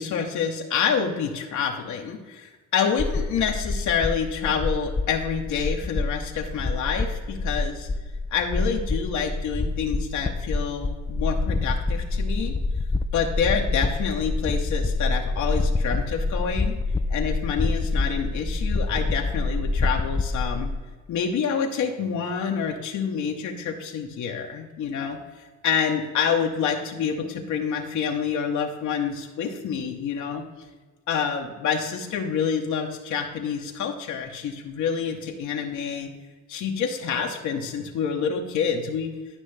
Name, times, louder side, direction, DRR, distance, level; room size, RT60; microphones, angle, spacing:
voice 1, 0.0-7.9 8.3-12.5 13.1-16.8 17.1-20.7 21.1-25.2 25.6-30.4 31.1-36.1 36.5-39.1, left 6 dB, 70° left, 2 dB, 1.0 m, -27 dB
sound 1, 3.0-20.7, left 3 dB, 15° left, 0.3 m, -27 dB
11.5 x 5.3 x 3.3 m, 1.3 s
cardioid pair, 90°, 30 cm